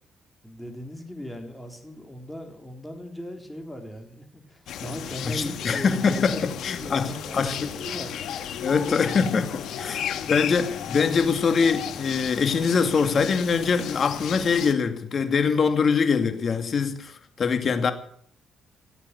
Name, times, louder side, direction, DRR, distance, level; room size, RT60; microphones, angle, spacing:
voice 1, 0.4-8.2 8.6-9.2 9.6-9.9, equal, 5° left, 3.9 m, -38 dB
sound 1, 4.7-14.7, left 9 dB, 75° left, 1.6 m, -34 dB
voice 2, 5.2-7.7 8.6-17.9, left 5 dB, 50° left, 2.2 m, -23 dB
17.0 x 8.3 x 9.5 m
cardioid pair, 90°, 0 cm